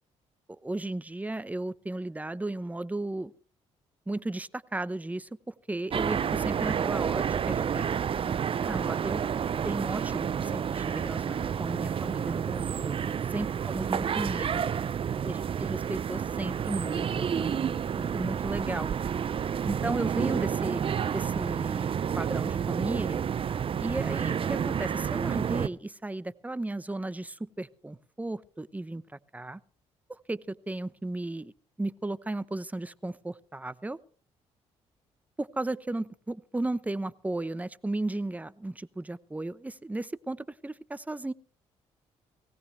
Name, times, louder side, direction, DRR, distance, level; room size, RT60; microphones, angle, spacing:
voice 1, 0.6-3.3 4.1-7.9 8.6-9.3 9.6-13.0 13.3-14.6 15.2-18.9 19.6-23.2 23.8-29.0 29.3-29.6 30.1-31.5 31.8-34.0 35.4-41.3, right 2 dB, 10° right, 16 dB, 0.9 m, -35 dB
sound 1, 5.9-25.7, right 8 dB, 45° right, 0.6 m, -30 dB
19.5 x 17.5 x 3.3 m, 0.41 s
supercardioid pair, 70°, 13 cm